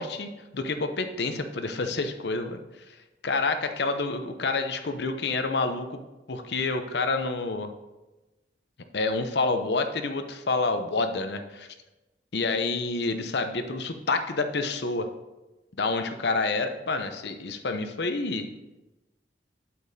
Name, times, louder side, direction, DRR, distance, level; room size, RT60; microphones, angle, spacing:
voice 1, 0.0-2.6 2.9-3.0 3.2-6.0 6.3-7.7 8.9-11.7 12.3-15.1 15.8-18.5, left 3 dB, 75° left, 7 dB, 0.7 m, -28 dB
8.5 x 8.4 x 2.7 m, 1.1 s
head